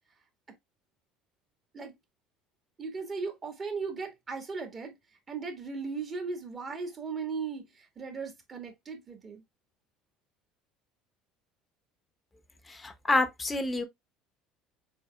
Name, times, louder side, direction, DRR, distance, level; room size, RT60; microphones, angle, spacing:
voice 1, 2.8-4.9 5.3-9.4, right 4 dB, 35° right, 2.1 m, -37 dB
voice 2, 12.8-13.8, left 2 dB, 20° left, 1.0 m, -27 dB
4.9 x 4.6 x 2.3 m
figure-of-eight pair, 65°, 0 cm